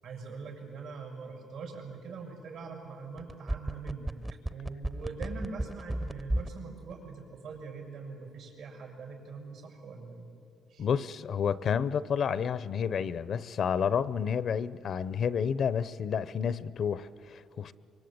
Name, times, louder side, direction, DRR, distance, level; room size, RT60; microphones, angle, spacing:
voice 1, 0.0-4.2 4.5-10.3 10.7-10.9, right 4 dB, 85° right, 6.9 m, -43 dB
sound 1, 3.2-6.6 6.9-7.0, right 1 dB, 15° right, 0.7 m, -32 dB
voice 2, 10.8-17.7, left 7 dB, 60° left, 0.8 m, -30 dB
25.5 x 24.0 x 8.8 m
cardioid pair, 90°, 0 cm